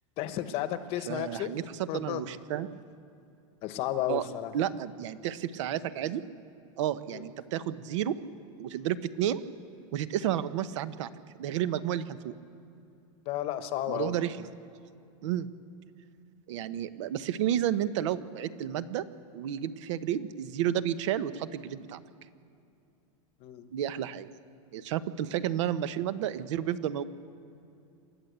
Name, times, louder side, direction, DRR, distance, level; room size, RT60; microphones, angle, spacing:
voice 1, 0.2-1.5 1.9-2.2 3.6-4.5 7.1-7.2 13.3-14.1 23.4-23.7, left 12 dB, 35° left, 11 dB, 1.0 m, -33 dB
voice 2, 1.1-2.7 4.1-4.2 4.5-6.2 6.8-8.1 8.6-9.4 9.9-11.1 11.4-12.3 13.9-14.5 15.2-15.5 16.5-19.0 19.3-22.0 23.7-24.3 24.7-27.1, right 11 dB, 60° right, 13 dB, 1.0 m, -31 dB
28.0 x 12.0 x 8.0 m, 2.6 s
supercardioid pair, 165°, 18 cm